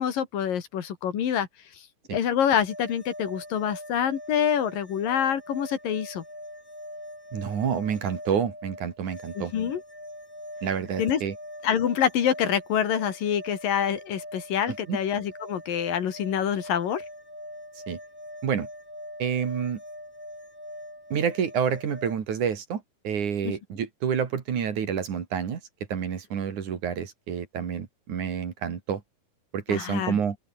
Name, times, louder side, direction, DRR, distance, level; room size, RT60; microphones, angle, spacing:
voice 1, 0.0-1.5 2.1-6.2 9.4-9.8 11.0-11.2 11.6-17.0 23.4-23.5 29.7-30.2, left 9 dB, 75° left, 4.0 m, -26 dB
sound 1, 2.7-22.2, left 1 dB, 5° left, 5.5 m, -43 dB
voice 2, 7.3-9.5 10.6-11.4 14.7-15.0 17.9-18.0 18.4-18.7 19.2-19.8 21.1-25.6 25.9-29.0 29.5-30.4, right 7 dB, 60° right, 3.8 m, -28 dB
open air
omnidirectional pair, 4.0 m